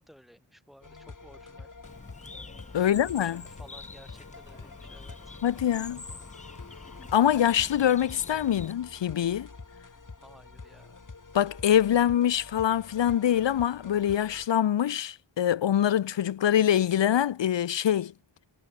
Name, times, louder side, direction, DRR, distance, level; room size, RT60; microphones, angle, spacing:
voice 1, 0.0-1.7 2.7-5.4 10.2-11.0, equal, ahead, 5.0 m, -55 dB
sound 1, 0.8-14.5, left 4 dB, 45° left, 3.2 m, -47 dB
Bird, 1.8-8.7, left 3 dB, 15° left, 0.5 m, -46 dB
voice 2, 2.7-3.4 5.4-6.0 7.1-9.5 11.3-18.1, left 10 dB, 70° left, 0.6 m, -24 dB
wide cardioid pair, 90°, 45 cm